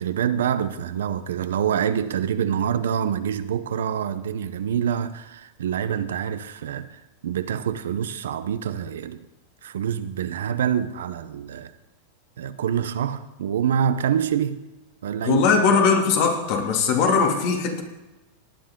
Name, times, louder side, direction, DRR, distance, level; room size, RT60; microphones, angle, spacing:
voice 1, 0.0-9.2 9.6-11.7 12.4-14.6 15.0-15.5, right 8 dB, 90° right, 0.7 m, -26 dB
voice 2, 15.2-17.8, left 5 dB, 55° left, 2.6 m, -20 dB
18.5 x 9.8 x 3.8 m
supercardioid pair, 135°, 0 cm